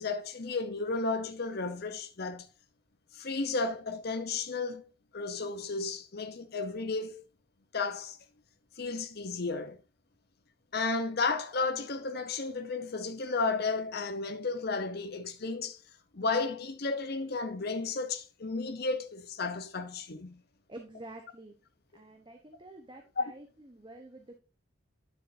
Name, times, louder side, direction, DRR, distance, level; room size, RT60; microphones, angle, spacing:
voice 1, 0.0-2.5 3.1-4.8 5.1-7.2 7.7-8.2 8.8-9.8 10.7-15.8 16.1-20.4 23.2-23.3, left 3 dB, 50° left, 0.9 m, -33 dB
voice 2, 20.7-21.5 21.9-24.4, right 2 dB, 25° right, 1.0 m, -48 dB
10.0 x 7.1 x 2.7 m
head